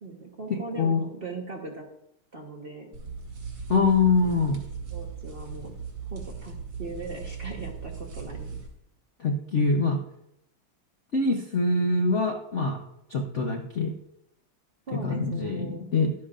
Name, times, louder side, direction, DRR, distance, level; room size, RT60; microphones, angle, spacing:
voice 1, 0.0-1.9 2.3-2.9 4.2-4.6 4.9-5.7 6.1-8.6 14.9-15.9, right 3 dB, 35° right, 0 dB, 1.0 m, -39 dB
sound 1, 2.9-8.7, right 5 dB, 80° right, 3.2 m, -38 dB
voice 2, 3.7-4.6 9.2-10.0 11.1-12.8 13.1-13.9 14.9-16.1, left 3 dB, 55° left, 2 dB, 0.8 m, -24 dB
11.5 x 10.5 x 2.5 m, 0.80 s
omnidirectional pair, 2.3 m